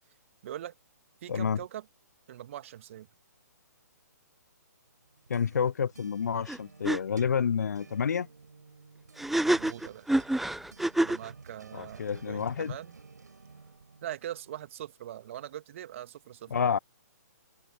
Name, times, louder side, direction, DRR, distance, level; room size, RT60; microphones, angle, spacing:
voice 1, 0.4-0.7 1.2-1.9 2.3-3.1 9.4-10.1 11.0-13.0 14.0-16.7, right 12 dB, 45° right, 2.4 m, -42 dB
voice 2, 1.3-1.6 5.3-8.3 11.7-12.7 16.5-16.8, left 7 dB, 65° left, 0.4 m, -29 dB
sound 1, 5.0-14.7, right 4 dB, 70° right, 7.5 m, -54 dB
sound 2, 6.5-6.6 6.8-7.0 9.2-11.3, right 1 dB, ahead, 0.7 m, -27 dB
figure-of-eight pair, 130°, 10 cm